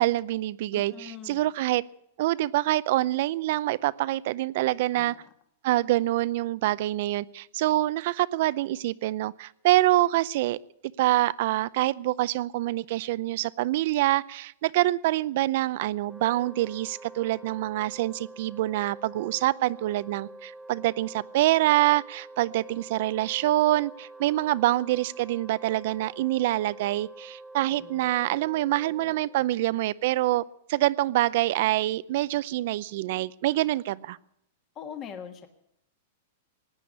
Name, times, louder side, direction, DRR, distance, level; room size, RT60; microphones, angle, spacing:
voice 1, 0.0-1.8 2.2-5.1 5.6-10.6 11.0-30.4 30.7-34.2, right 16 dB, 55° right, 19 dB, 0.6 m, -26 dB
voice 2, 0.7-1.5 4.9-5.2 27.7-28.2 34.7-35.5, left 8 dB, 25° left, 6 dB, 1.5 m, -42 dB
Wind instrument woodwind instrument, 16.0-29.4, right 2 dB, 5° right, 0.8 m, -47 dB
17.0 x 9.9 x 8.5 m, 0.74 s
supercardioid pair, 155°, 0 cm